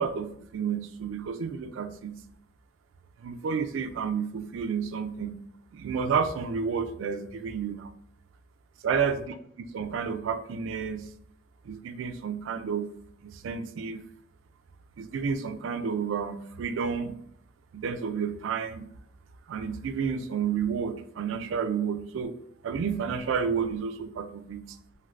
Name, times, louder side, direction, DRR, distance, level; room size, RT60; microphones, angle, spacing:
voice 1, 0.0-2.1 3.2-5.3 5.7-7.9 8.8-9.3 9.7-11.0 11.7-12.9 13.2-14.0 15.0-17.1 17.7-18.9 19.5-22.3 22.6-24.6, right 6 dB, 70° right, 9 dB, 0.3 m, -30 dB
2.8 x 2.4 x 3.1 m, 0.66 s
head